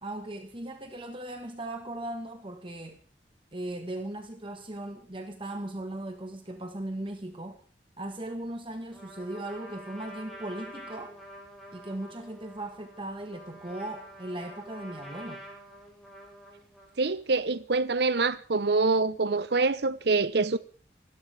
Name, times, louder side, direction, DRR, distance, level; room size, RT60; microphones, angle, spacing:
voice 1, 0.0-3.0 3.5-7.6 8.0-11.1 11.7-15.4, right 1 dB, 30° right, 1.5 m, -38 dB
Trumpet, 8.9-17.0, equal, ahead, 4.9 m, -47 dB
voice 2, 17.0-20.6, right 3 dB, 65° right, 0.9 m, -25 dB
29.0 x 12.5 x 3.5 m
head